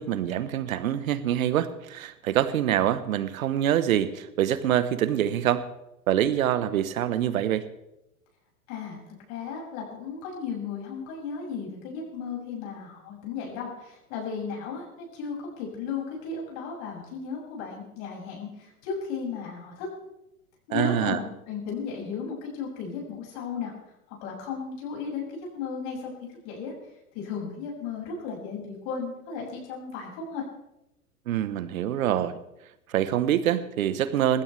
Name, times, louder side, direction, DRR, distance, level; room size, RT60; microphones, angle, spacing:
voice 1, 0.0-5.7 6.1-7.7 20.7-21.2 31.3-32.4 32.9-34.4, right 11 dB, 65° right, 14 dB, 1.3 m, -25 dB
voice 2, 8.7-19.9 20.7-23.7 24.2-26.1 26.4-26.7 27.1-30.4, left 5 dB, 50° left, -2 dB, 7.1 m, -35 dB
20.0 x 16.0 x 3.5 m, 0.86 s
hypercardioid pair, 105°, 44 cm